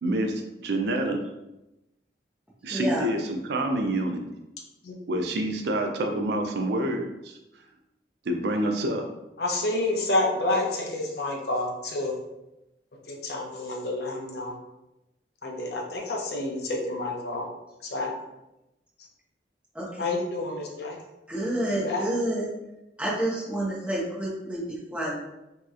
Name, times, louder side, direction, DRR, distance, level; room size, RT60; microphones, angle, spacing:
voice 1, 0.0-1.2 2.6-4.2 5.1-7.4 8.3-9.0, right 1 dB, 65° right, 4 dB, 0.4 m, -27 dB
voice 2, 2.7-3.1 19.7-20.1 21.3-22.5 23.0-25.2, right 1 dB, 5° right, -6 dB, 0.7 m, -29 dB
voice 3, 9.4-12.1 13.1-14.5 15.4-17.5 17.9-18.1 20.0-21.0 21.8-22.0, left 2 dB, 60° left, 0 dB, 0.5 m, -29 dB
3.0 x 2.8 x 2.4 m, 0.95 s
head